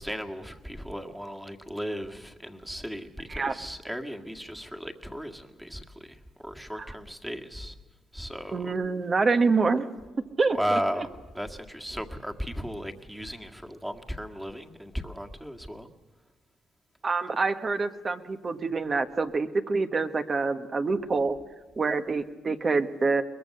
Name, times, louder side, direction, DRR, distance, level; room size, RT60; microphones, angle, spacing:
voice 1, 0.0-7.8 8.1-8.7 10.5-15.9, equal, 5° right, 4 dB, 1.9 m, -35 dB
voice 2, 8.5-9.9 10.4-10.8 17.0-21.4 21.8-23.2, right 4 dB, 35° right, 8 dB, 1.4 m, -26 dB
22.5 x 21.0 x 6.6 m, 1.3 s
cardioid pair, 90°, 0 cm